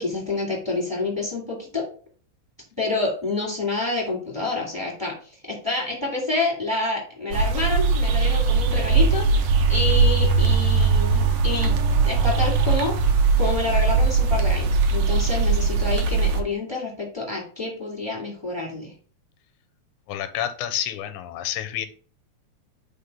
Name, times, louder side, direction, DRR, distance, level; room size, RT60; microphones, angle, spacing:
voice 1, 0.0-1.9 2.8-11.8 12.0-13.0 13.4-18.9, left 3 dB, 5° right, -4 dB, 2.3 m, -28 dB
sound 1, 7.3-16.4, right 4 dB, 70° right, 1.8 m, -20 dB
voice 2, 20.1-21.9, left 10 dB, 90° left, 9 dB, 2.2 m, -29 dB
5.1 x 4.1 x 5.6 m, 0.41 s
omnidirectional pair, 3.5 m